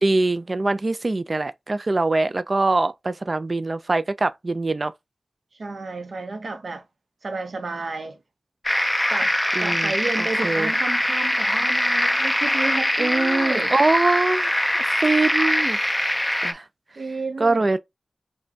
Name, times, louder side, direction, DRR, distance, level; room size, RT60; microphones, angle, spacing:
voice 1, 0.0-4.9 9.6-9.9 10.4-10.7 13.0-14.5 14.9-15.8 16.4-16.6 17.4-17.8, right 3 dB, 45° right, 0.4 m, -23 dB
voice 2, 5.6-6.8 7.2-8.2 9.1-9.3 9.6-13.7 17.0-17.7, right 3 dB, 75° right, 0.7 m, -31 dB
sound 1, 8.6-16.5, left 1 dB, 10° left, 0.5 m, -22 dB
5.0 x 2.2 x 2.7 m
wide cardioid pair, 70°, 0 cm